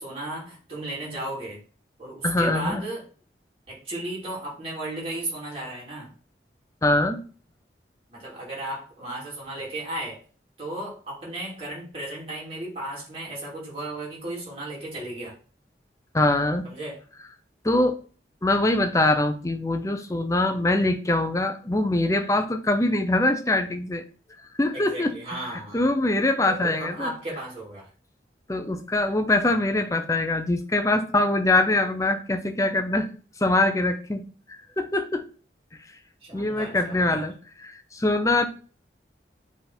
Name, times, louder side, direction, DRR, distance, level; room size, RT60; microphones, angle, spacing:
voice 1, 0.0-1.6 2.0-3.0 3.7-6.1 8.1-10.2 10.6-15.3 16.6-17.0 24.7-25.8 26.5-27.9 36.2-37.2, right 1 dB, 35° right, -5 dB, 3.5 m, -35 dB
voice 2, 2.2-2.8 6.8-7.2 16.1-16.7 17.6-18.0 18.4-24.0 24.6-25.4 25.7-27.1 28.5-33.1 33.4-35.2 36.3-38.5, left 2 dB, 20° left, 7 dB, 0.6 m, -23 dB
8.0 x 3.6 x 4.4 m, 0.40 s
head